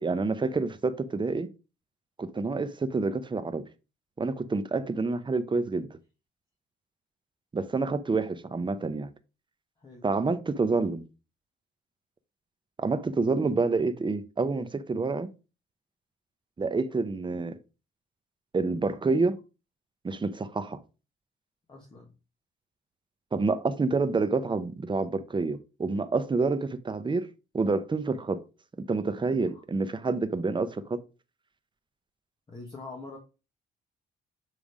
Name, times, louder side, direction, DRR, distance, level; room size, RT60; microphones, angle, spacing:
voice 1, 0.0-1.5 2.2-3.6 4.2-5.9 7.5-9.1 10.0-11.0 12.8-15.3 16.6-17.6 18.5-19.4 20.0-20.8 23.3-27.3 27.5-28.4 28.9-31.0, right 3 dB, 25° right, 0.8 m, -28 dB
voice 2, 21.7-22.1 29.5-29.6 32.5-33.2, left 3 dB, 25° left, 1.7 m, -44 dB
7.3 x 3.3 x 4.9 m
cardioid pair, 90°, 20 cm